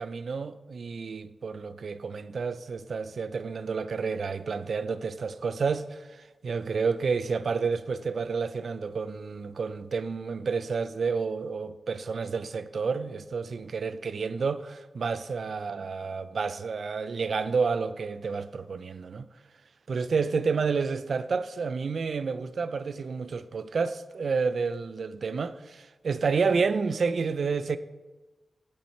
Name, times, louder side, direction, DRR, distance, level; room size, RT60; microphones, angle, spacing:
voice 1, 0.0-19.3 19.9-27.8, right 5 dB, 65° right, 0.3 m, -30 dB
8.4 x 4.6 x 4.3 m
wide cardioid pair, 110°, 0 cm